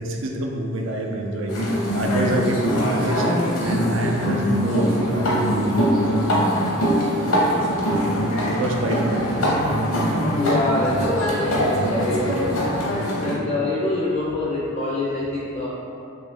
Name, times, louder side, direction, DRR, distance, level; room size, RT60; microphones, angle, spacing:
voice 1, 0.0-3.3 3.6-5.8 8.5-9.4, right 1 dB, 65° right, 1 dB, 0.4 m, -26 dB
sound 1, 1.5-13.4, equal, 80° left, 0.8 m, -22 dB
voice 2, 10.3-12.6 13.2-15.7, left 2 dB, 35° left, -6 dB, 0.4 m, -25 dB
3.1 x 2.6 x 3.4 m, 2.7 s
head